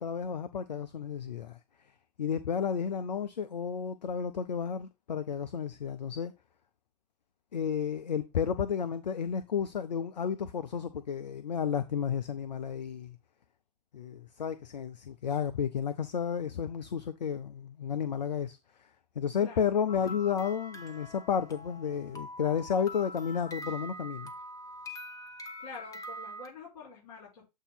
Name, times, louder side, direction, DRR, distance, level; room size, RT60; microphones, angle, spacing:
voice 1, 0.0-1.6 2.2-6.3 7.5-13.2 13.9-18.6 19.2-24.3, left 7 dB, 80° left, 0.6 m, -32 dB
voice 2, 19.4-19.8 25.6-27.5, left 4 dB, 60° left, 4.5 m, -47 dB
sound 1, 19.9-26.5, equal, 15° left, 1.2 m, -44 dB
8.1 x 2.7 x 5.7 m
figure-of-eight pair, 100°, 21 cm